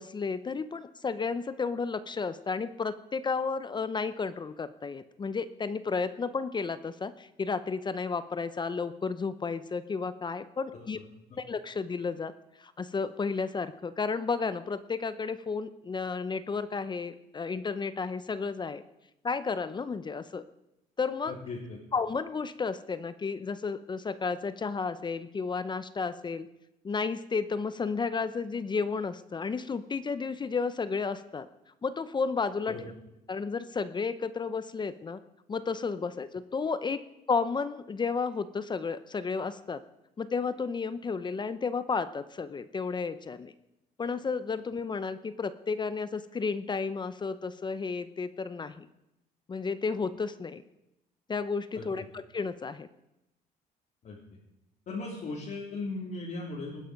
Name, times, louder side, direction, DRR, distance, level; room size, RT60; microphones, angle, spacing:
voice 1, 0.0-11.0 11.4-12.3 12.6-18.8 19.2-20.4 21.0-21.3 21.9-26.5 26.8-31.5 31.8-32.8 33.3-35.2 35.5-37.0 37.3-39.8 40.2-43.5 44.0-48.9 49.5-50.6 51.3-52.9, left 5 dB, 25° left, 13 dB, 0.7 m, -32 dB
voice 2, 21.3-21.8 32.7-32.9 51.8-51.9 54.0-54.2 54.9-56.8, left 3 dB, 50° left, -5 dB, 3.5 m, -37 dB
20.0 x 10.0 x 5.2 m, 0.88 s
cardioid pair, 110°, 17 cm